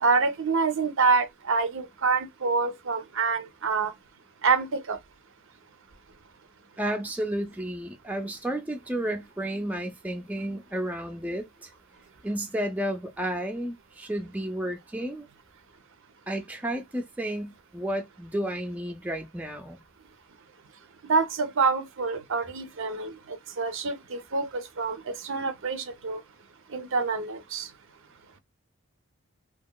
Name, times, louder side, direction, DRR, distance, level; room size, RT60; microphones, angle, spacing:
voice 1, 0.0-3.9 4.4-5.0 21.1-26.2 26.7-27.7, right 4 dB, 65° right, 0.6 m, -26 dB
voice 2, 6.8-11.7 12.2-15.3 16.3-19.8, right 1 dB, 10° right, 0.4 m, -32 dB
2.9 x 2.8 x 2.2 m
head